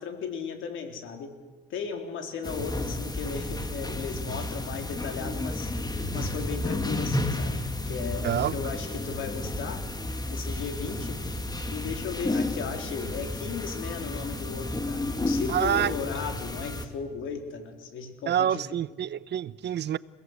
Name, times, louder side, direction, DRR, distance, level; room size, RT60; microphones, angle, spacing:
voice 1, 0.0-1.3 1.7-5.7 6.1-9.9 10.3-11.2 11.7-18.6, left 6 dB, 80° left, 3.8 m, -36 dB
sound 1, 2.4-16.9, left 2 dB, 20° left, 2.5 m, -32 dB
voice 2, 8.2-8.5 15.5-15.9 18.3-20.0, right 10 dB, 60° right, 0.8 m, -27 dB
29.0 x 17.5 x 8.2 m
cardioid pair, 90°, 20 cm